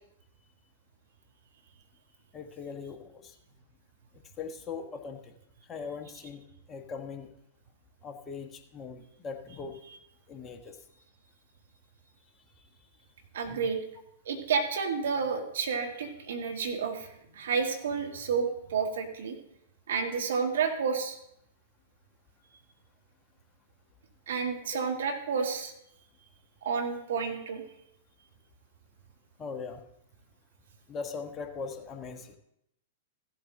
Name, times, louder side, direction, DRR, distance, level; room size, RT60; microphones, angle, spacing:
voice 1, 2.3-3.3 4.4-5.3 5.7-6.4 6.7-7.3 8.0-9.8 10.3-10.8 12.6-12.7 13.5-13.6 24.7-24.8 29.4-29.8 30.9-32.4, left 5 dB, 25° left, 4 dB, 1.2 m, -40 dB
voice 2, 13.3-13.8 14.2-17.1 17.3-19.3 19.9-21.2 24.3-25.7 26.6-27.6, right 5 dB, 70° right, 4 dB, 1.7 m, -30 dB
16.0 x 7.9 x 3.8 m, 0.78 s
hypercardioid pair, 105°, 0 cm